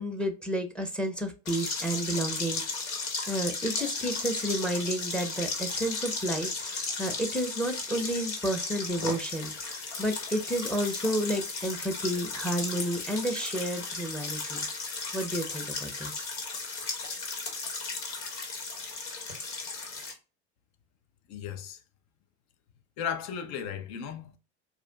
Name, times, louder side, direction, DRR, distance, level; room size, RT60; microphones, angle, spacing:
voice 1, 0.0-2.8 3.3-14.7 15.1-16.3, right 1 dB, 5° left, 0.8 m, -31 dB
sound 1, 1.5-20.1, left 4 dB, 85° left, 1.6 m, -35 dB
voice 2, 21.3-21.8 23.0-24.4, left 8 dB, 50° left, 0.8 m, -35 dB
4.8 x 2.6 x 2.3 m
supercardioid pair, 110°, 34 cm